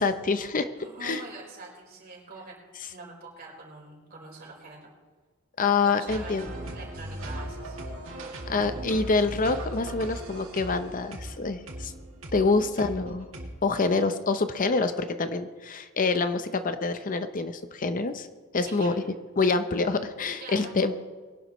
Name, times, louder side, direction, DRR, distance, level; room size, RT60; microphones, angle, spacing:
voice 1, 0.0-0.7 1.0-1.2 5.6-6.5 8.5-11.9 12.3-13.3 13.6-18.3 18.5-18.9 19.4-20.9, left 3 dB, 40° left, 10 dB, 0.7 m, -26 dB
voice 2, 0.8-2.6 2.9-4.9 5.8-7.8 18.6-19.1 20.4-20.7, right 3 dB, 45° right, -2 dB, 4.4 m, -44 dB
sound 1, 6.1-13.5, right 1 dB, 90° right, 2.2 m, -38 dB
22.0 x 11.5 x 3.1 m, 1.4 s
head